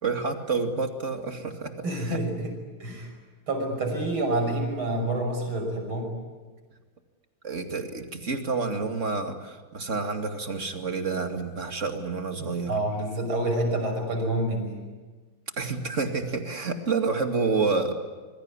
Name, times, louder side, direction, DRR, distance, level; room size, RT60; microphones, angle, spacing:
voice 1, 0.0-2.2 7.4-12.8 15.6-17.9, right 4 dB, 35° right, 5 dB, 2.6 m, -29 dB
voice 2, 1.8-2.5 2.8-3.1 3.5-6.1 12.7-14.9, right 1 dB, 75° right, 4 dB, 6.8 m, -28 dB
26.0 x 23.5 x 9.8 m, 1.3 s
omnidirectional pair, 2.3 m